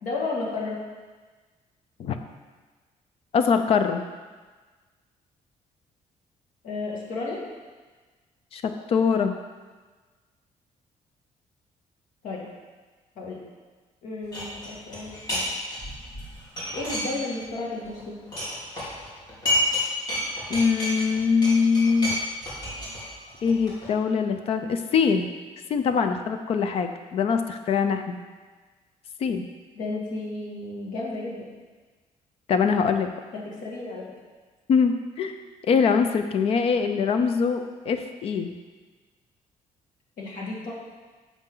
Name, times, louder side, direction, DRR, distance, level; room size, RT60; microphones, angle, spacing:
voice 1, 0.0-0.8 6.6-7.4 12.2-12.4 13.2-13.4 14.0-15.5 16.8-18.2 29.7-31.5 33.3-34.1 40.2-40.7, left 3 dB, 80° left, -3 dB, 2.2 m, -33 dB
voice 2, 3.3-4.0 8.5-9.3 20.5-22.2 23.4-25.3 25.7-28.2 29.2-29.4 32.5-33.1 34.7-35.4 35.7-38.5, left 5 dB, 50° left, 8 dB, 0.5 m, -23 dB
sound 1, 14.3-15.5 15.7-17.5 17.8-19.8 20.1-23.9, left 1 dB, 30° left, 2.8 m, -30 dB
9.8 x 7.2 x 3.9 m, 1.4 s
cardioid pair, 180°, 13 cm